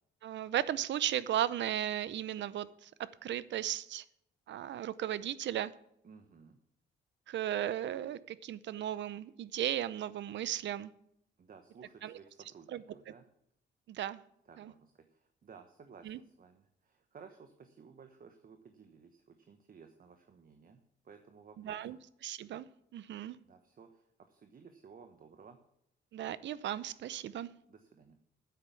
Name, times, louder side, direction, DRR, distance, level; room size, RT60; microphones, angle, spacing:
voice 1, 0.2-4.0 4.5-5.7 7.3-10.9 12.0-12.2 12.7-12.8 13.9-14.2 14.6-14.7 16.0-16.2 21.6-22.0 22.2-22.7 22.9-23.4 26.1-27.5, right 11 dB, 65° right, 17 dB, 0.7 m, -36 dB
voice 2, 6.0-6.6 11.4-13.3 14.4-22.0 23.4-25.6 27.7-28.2, right 5 dB, 45° right, 6 dB, 1.2 m, -56 dB
9.6 x 8.2 x 7.1 m, 0.74 s
cardioid pair, 90°, 20 cm